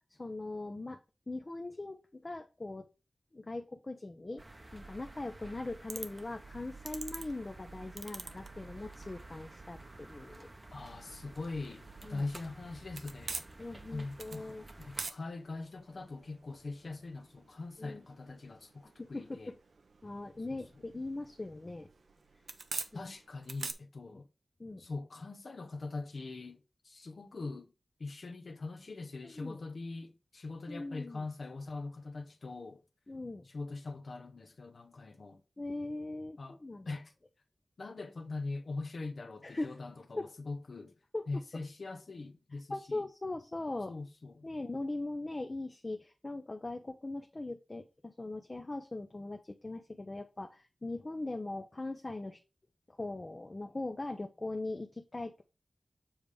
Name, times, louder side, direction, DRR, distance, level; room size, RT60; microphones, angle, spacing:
voice 1, 0.2-1.0 1.3-2.8 3.3-4.4 4.7-10.5 12.0-12.2 13.6-14.7 17.8-18.0 19.0-19.4 20.0-21.9 22.9-23.1 24.1-24.2 24.6-24.9 29.2-29.6 30.7-31.2 33.1-33.5 35.6-36.9 39.4-39.8 40.2-40.3 41.1-41.3 42.7-43.9 44.4-52.4 52.9-55.4, left 2 dB, 35° left, 0.6 m, -40 dB
sound 1, 4.4-15.1, right 2 dB, 25° right, 0.8 m, -51 dB
sound 2, 5.9-23.7, right 4 dB, 75° right, 0.7 m, -48 dB
voice 2, 10.7-11.8 12.1-13.4 13.9-19.5 20.5-20.8 22.9-24.3 24.8-26.6 26.8-27.7 28.0-32.8 33.5-35.4 36.4-36.6 36.9-37.1 37.8-40.9 41.3-43.0 43.9-44.5, left 3 dB, 65° left, 0.8 m, -42 dB
7.2 x 3.4 x 5.0 m
wide cardioid pair, 95°, 0 cm